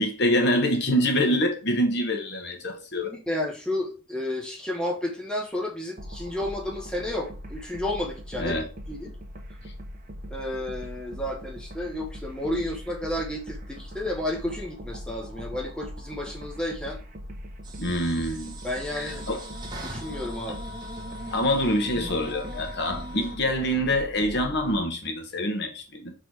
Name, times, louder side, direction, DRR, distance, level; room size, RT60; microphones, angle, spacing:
voice 1, 0.0-3.1 8.4-8.7 17.8-18.6 18.9-19.4 21.3-26.1, equal, 55° left, 1.3 m, -25 dB
voice 2, 3.0-8.5 8.9-9.1 10.3-17.0 18.6-19.2 19.8-20.6, left 1 dB, 5° left, 1.1 m, -31 dB
sound 1, 6.0-24.8, equal, 40° right, 1.1 m, -41 dB
sound 2, 17.6-23.3, right 1 dB, 20° right, 1.4 m, -40 dB
6.0 x 3.9 x 4.7 m
head